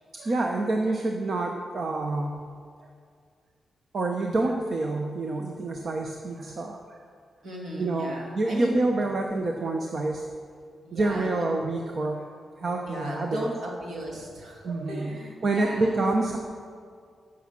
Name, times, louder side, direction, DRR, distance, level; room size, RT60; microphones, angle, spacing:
voice 1, 0.1-2.4 3.9-7.0 7.8-10.2 10.9-12.3 12.6-13.4 14.6-15.1 15.4-16.4, right 2 dB, 40° right, 2 dB, 0.8 m, -27 dB
voice 2, 7.4-8.7 10.8-11.4 12.9-16.0, right 1 dB, 60° right, -2 dB, 2.5 m, -36 dB
14.5 x 6.2 x 6.0 m, 2.2 s
wide cardioid pair, 170°, 0 cm